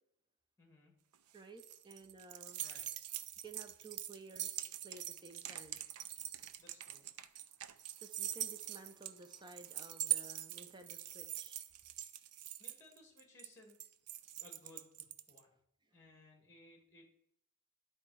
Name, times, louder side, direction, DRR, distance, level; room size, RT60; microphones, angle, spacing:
voice 1, 0.6-1.0 2.6-2.8 6.6-7.0 12.6-13.8 14.4-15.5 15.9-17.1, left 2 dB, 15° left, 2 dB, 1.7 m, -61 dB
sound 1, 1.1-15.4, right 13 dB, 85° right, 0.5 m, -43 dB
voice 2, 1.3-2.7 3.4-5.8 8.0-11.6, right 3 dB, 20° right, 7 dB, 0.7 m, -55 dB
11.0 x 4.4 x 4.7 m, 0.73 s
head